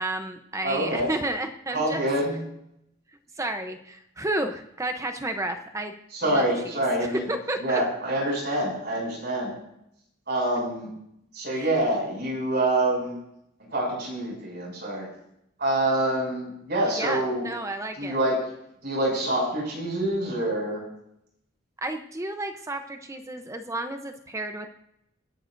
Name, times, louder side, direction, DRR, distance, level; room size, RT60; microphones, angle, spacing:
voice 1, 0.0-2.0 3.4-5.9 6.3-6.4 7.1-7.8 11.5-11.7 17.0-18.2 21.8-24.7, right 2 dB, 15° right, 6 dB, 0.7 m, -31 dB
voice 2, 0.6-1.1 1.7-2.3 6.1-7.2 7.6-9.5 10.3-10.9 11.3-13.2 13.7-15.1 15.6-17.4 18.0-18.4 18.8-20.8, right 1 dB, 55° right, -2 dB, 6.6 m, -26 dB
26.5 x 11.0 x 2.6 m, 0.78 s
head